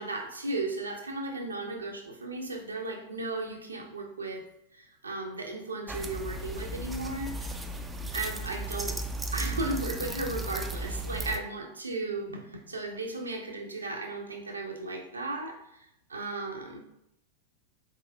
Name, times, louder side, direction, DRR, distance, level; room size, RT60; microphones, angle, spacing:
voice 1, 0.0-4.4 4.7-7.6 8.1-9.0 9.3-16.8, right 2 dB, 75° right, 2 dB, 0.6 m, -35 dB
sound 1, 5.9-11.4, right 2 dB, 10° right, 0.3 m, -35 dB
4.0 x 3.6 x 2.4 m, 0.80 s
figure-of-eight pair, 90°, 0 cm